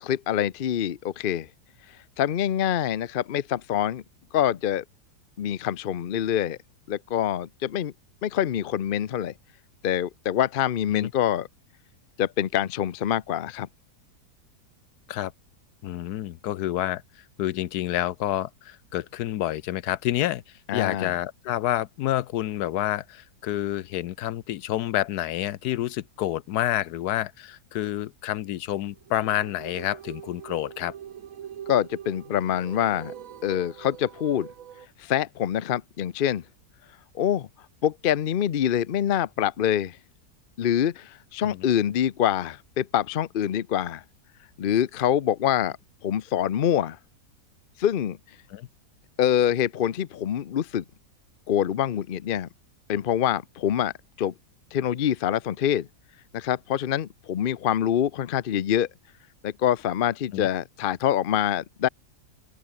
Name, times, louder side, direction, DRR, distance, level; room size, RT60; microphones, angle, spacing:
voice 1, 0.0-1.5 2.2-4.0 4.3-4.8 5.4-6.6 6.9-7.9 8.2-9.3 9.8-11.5 12.2-13.7 20.7-21.1 31.7-33.1 33.4-34.5 35.0-36.4 37.1-37.5 37.8-40.0 40.6-44.0 44.6-45.8 46.0-47.0 47.8-48.2 49.2-50.8 51.5-52.5 52.9-53.9 54.2-54.3 54.7-55.9 56.3-58.9 59.4-61.9, left 10 dB, 55° left, 0.5 m, -25 dB
voice 2, 15.8-17.0 17.4-20.4 20.7-30.9 41.4-41.6 48.5-48.7 60.3-60.5, left 13 dB, 75° left, 1.2 m, -28 dB
sound 1, 28.9-34.9, right 9 dB, 60° right, 1.3 m, -43 dB
open air
omnidirectional pair, 1.7 m